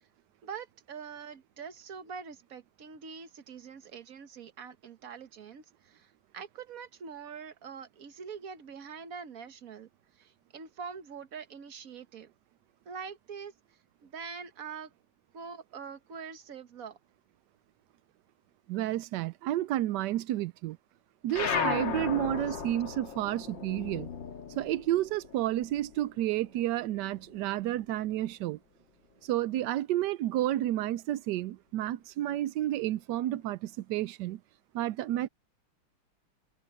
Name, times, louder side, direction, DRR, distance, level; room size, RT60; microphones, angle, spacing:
voice 1, 0.4-9.9 10.1-12.3 12.8-13.5 14.0-14.9 15.3-17.0, right 6 dB, 45° right, 1.5 m, -44 dB
voice 2, 18.7-20.8 21.2-24.1 24.6-28.6 29.2-34.4 34.7-35.3, right 14 dB, 85° right, 0.9 m, -31 dB
sound 1, 21.3-26.2 26.5-27.9, left 6 dB, 60° left, 2.4 m, -35 dB
omnidirectional pair, 2.4 m